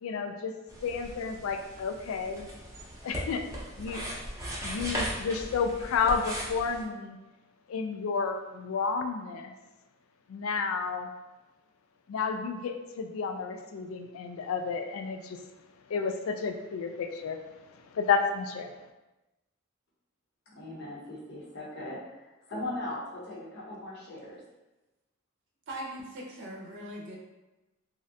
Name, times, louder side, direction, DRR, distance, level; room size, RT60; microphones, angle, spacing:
voice 1, 0.0-0.5 0.8-2.5 3.0-3.4 3.8-4.0 4.6-7.2 7.7-9.6 10.3-11.1 12.1-15.4 15.9-18.7, left 5 dB, 85° left, 6 dB, 0.3 m, -31 dB
sound 1, 0.7-6.8, equal, 15° right, 0.6 m, -38 dB
voice 2, 20.5-24.4, left 1 dB, 60° left, -4 dB, 0.8 m, -39 dB
voice 3, 25.7-27.2, right 1 dB, 60° right, -2 dB, 0.6 m, -40 dB
3.1 x 2.5 x 2.7 m, 1.1 s
head